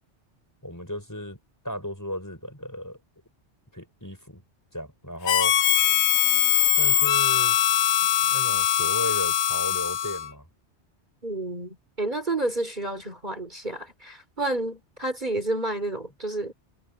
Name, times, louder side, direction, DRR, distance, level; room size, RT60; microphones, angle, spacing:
voice 1, 0.6-3.0 3.7-4.4 4.7-5.6 6.8-7.6 8.3-10.4, equal, 15° left, 5.1 m, -35 dB
Harmonica, 5.3-10.3, left 10 dB, 75° left, 0.9 m, -22 dB
voice 2, 11.2-16.5, right 2 dB, 40° right, 3.9 m, -30 dB
omnidirectional pair, 1.2 m